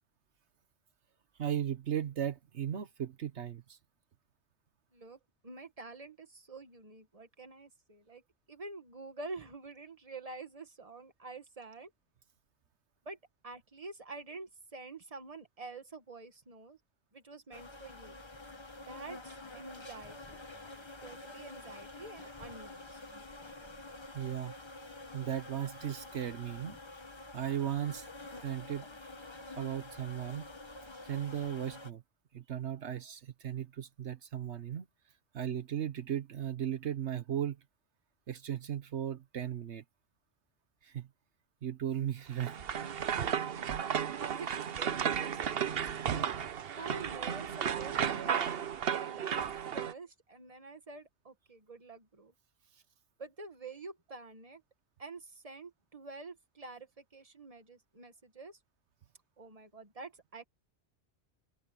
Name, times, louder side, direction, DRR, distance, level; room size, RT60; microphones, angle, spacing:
voice 1, 1.4-3.8 24.1-24.5 25.1-26.8 27.3-28.1 28.4-28.9 29.6-30.5 31.0-32.0 32.3-34.8 35.3-37.6 38.3-39.8 40.8-41.1 41.6-42.6, right 10 dB, 80° right, 1.2 m, -36 dB
voice 2, 4.9-8.2 8.5-11.9 13.0-13.2 13.4-16.8 17.1-18.2 18.9-20.4 21.0-23.0 44.2-45.8 46.8-52.3 53.2-54.6 55.0-58.6 59.4-60.4, right 3 dB, 30° right, 1.8 m, -48 dB
Swarm of bees, 17.5-31.9, left 2 dB, 25° left, 1.3 m, -48 dB
sound 1, 42.3-49.9, right 8 dB, 60° right, 1.0 m, -34 dB
omnidirectional pair, 1.1 m